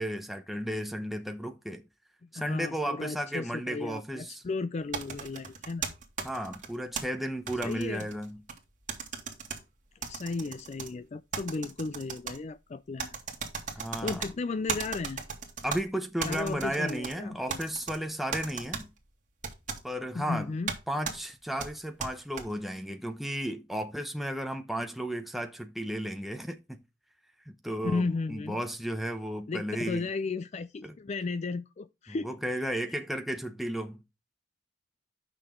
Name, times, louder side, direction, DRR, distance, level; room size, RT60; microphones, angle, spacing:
voice 1, 0.0-1.8 2.3-4.4 6.2-8.4 13.8-14.2 15.6-18.9 19.8-20.5 20.9-26.8 27.5-30.1 30.8-30.9 32.1-34.0, right 1 dB, ahead, 0.8 m, -34 dB
voice 2, 2.2-5.9 7.6-8.1 10.0-13.1 13.7-15.2 16.3-17.6 20.1-20.7 27.8-28.6 29.5-33.0, left 3 dB, 40° left, 0.4 m, -35 dB
sound 1, 4.9-7.0 7.5-8.6 8.9-9.6 10.0-10.9 11.3-12.4 13.0-14.3 14.7-15.8 16.2-17.1 17.5-18.0 18.3-18.8 19.4-19.8 20.7-20.8 21.0-21.2 21.6-22.4, right 6 dB, 45° right, 2.2 m, -36 dB
9.5 x 6.1 x 3.7 m
head